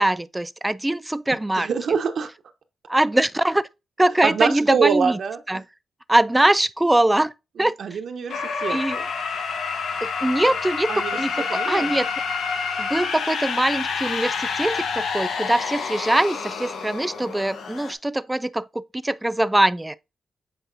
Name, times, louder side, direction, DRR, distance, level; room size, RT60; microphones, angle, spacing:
voice 1, 0.0-1.7 2.9-3.7 4.0-5.2 5.5-5.6 6.1-7.3 7.6-7.8 8.7-9.0 10.0-12.1 12.8-19.9, right 1 dB, 10° right, 0.4 m, -22 dB
voice 2, 1.6-2.3 4.2-5.4 7.6-8.8 10.9-11.2 11.5-12.0, right 6 dB, 65° right, 1.0 m, -24 dB
sound 1, 8.3-17.9, left 5 dB, 85° left, 1.2 m, -28 dB
8.0 x 4.9 x 2.7 m
cardioid pair, 115°, 0 cm